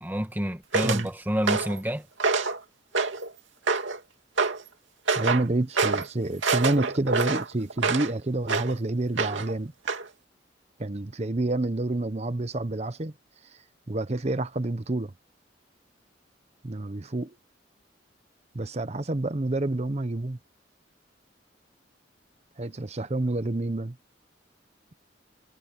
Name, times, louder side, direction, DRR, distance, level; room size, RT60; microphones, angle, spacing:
voice 1, 0.0-2.1, equal, 10° right, 1.7 m, -28 dB
sound 1, 0.7-1.0 1.5-1.8 2.2-2.6 2.9-3.3 3.7-4.0 4.4-4.6 5.1-5.5 5.8-6.1 6.4-8.1 8.5-8.7 9.2-9.5 9.9-10.0, right 4 dB, 85° right, 2.6 m, -26 dB
voice 2, 5.1-9.7 10.8-13.1 13.4-15.1 16.6-17.4 18.5-20.4 22.6-24.0, right 2 dB, 35° right, 0.8 m, -28 dB
head